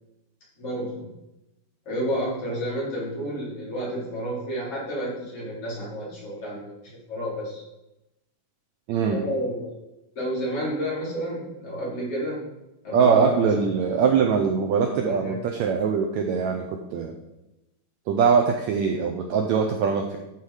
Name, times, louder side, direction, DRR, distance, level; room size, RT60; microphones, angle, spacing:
voice 1, 0.6-1.1 1.9-7.6 9.0-9.7 10.2-12.5 12.8-13.6 15.0-15.4, equal, 45° left, -6 dB, 4.0 m, -30 dB
voice 2, 8.9-9.2 12.9-17.1 18.1-20.2, right 6 dB, 80° right, 4 dB, 1.6 m, -22 dB
12.0 x 4.6 x 4.9 m, 0.94 s
omnidirectional pair, 4.0 m